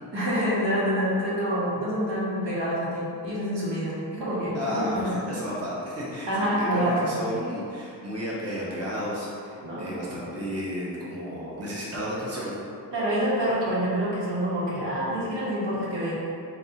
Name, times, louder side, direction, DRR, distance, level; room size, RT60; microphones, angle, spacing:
voice 1, 0.1-5.2 6.3-7.3 9.6-9.9 12.9-16.1, equal, 85° right, -9 dB, 1.3 m, -27 dB
voice 2, 4.5-12.6, equal, 35° right, -7 dB, 0.9 m, -32 dB
5.2 x 2.4 x 2.8 m, 2.5 s
wide cardioid pair, 105°, 42 cm